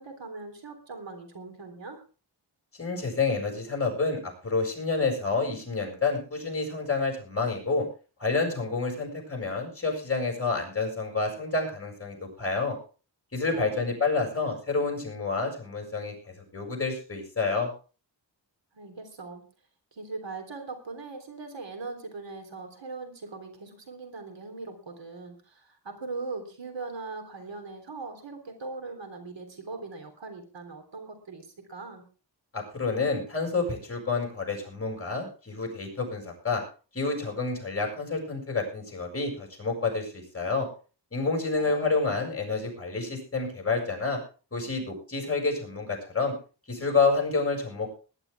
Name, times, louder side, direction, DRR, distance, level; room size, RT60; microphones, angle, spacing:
voice 1, 0.0-2.0 13.5-13.9 18.7-19.4 19.9-32.0 41.6-41.9, right 3 dB, 75° right, 6 dB, 3.7 m, -40 dB
voice 2, 2.7-7.9 8.2-12.8 13.3-16.1 16.5-17.7 32.5-36.6 36.9-40.7 41.1-44.2 44.5-46.3 46.7-48.0, left 4 dB, 30° left, 1 dB, 6.8 m, -29 dB
20.0 x 11.0 x 3.6 m, 0.36 s
wide cardioid pair, 105°, 44 cm